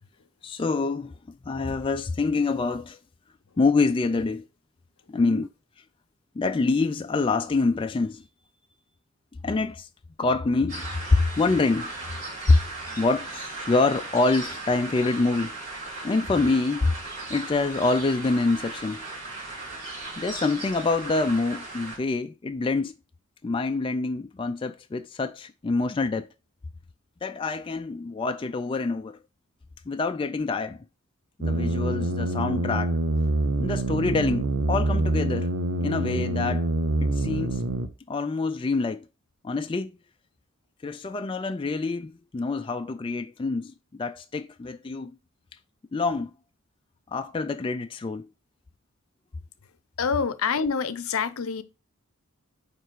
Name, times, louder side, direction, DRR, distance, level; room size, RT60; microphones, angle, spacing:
voice 1, 0.4-1.1 1.5-3.0 3.6-4.5 5.1-5.5 6.4-8.2 9.4-9.9 10.2-11.9 12.5-12.6 13.0-15.6 16.0-17.0 17.3-19.1 20.2-23.0 23.4-26.3 27.2-29.2 29.9-30.8 31.4-32.9 33.6-35.5 35.8-36.7 37.0-37.6 38.1-39.1 39.4-40.0 40.8-45.1 45.9-46.3 47.1-48.3, left 3 dB, 25° left, 0.3 m, -26 dB
sound 1, 10.7-22.0, right 2 dB, 35° right, 4.1 m, -37 dB
sound 2, 31.4-37.9, right 2 dB, 85° right, 1.0 m, -26 dB
voice 2, 50.0-51.6, left 5 dB, 70° left, 0.6 m, -27 dB
9.2 x 3.3 x 4.6 m
head